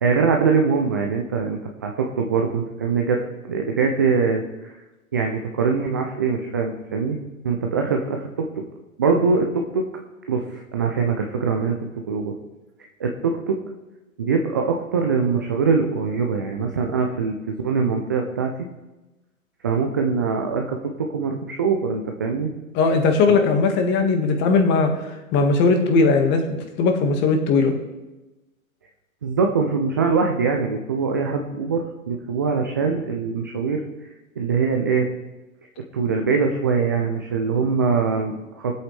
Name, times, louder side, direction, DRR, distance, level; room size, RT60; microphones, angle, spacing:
voice 1, 0.0-4.7 5.1-7.2 7.4-8.6 9.0-9.9 10.3-11.8 12.1-12.4 13.0-13.6 14.2-18.5 19.6-22.5 23.3-23.4 29.2-33.8 34.4-35.1 35.9-38.8, right 5 dB, 15° right, 2 dB, 0.3 m, -23 dB
voice 2, 22.7-24.9 25.3-27.7, left 4 dB, 25° left, 5 dB, 1.6 m, -18 dB
20.0 x 8.2 x 3.3 m, 1.1 s
figure-of-eight pair, 115°, 41 cm